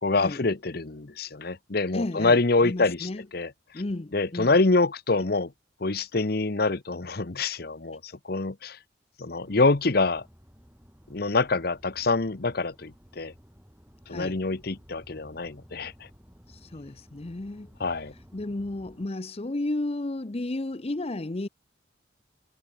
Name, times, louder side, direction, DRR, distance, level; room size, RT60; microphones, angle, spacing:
voice 1, 0.0-3.5 4.1-5.5 5.8-8.8 9.2-10.2 11.1-13.3 14.1-15.9 17.8-18.1, left 3 dB, 50° left, 1.0 m, -25 dB
voice 2, 1.9-2.4 2.6-3.2 3.7-4.5 14.1-14.4 16.5-17.7 18.3-21.5, left 2 dB, 30° left, 0.7 m, -33 dB
sound 1, 9.4-19.1, equal, 10° right, 6.4 m, -54 dB
head